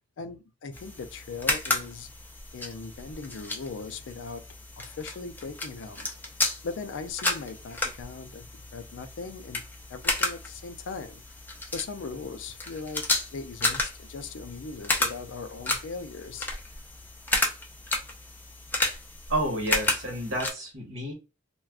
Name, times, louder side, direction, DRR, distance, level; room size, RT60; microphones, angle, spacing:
voice 1, 0.2-2.1 2.5-4.4 4.8-6.1 6.6-9.6 9.9-11.2 11.7-16.5, left 4 dB, 70° left, 0.4 m, -39 dB
sound 1, 0.7-20.5, left 2 dB, 10° left, 0.5 m, -32 dB
voice 2, 19.3-21.1, right 1 dB, 75° right, 1.1 m, -30 dB
2.4 x 2.2 x 3.4 m
head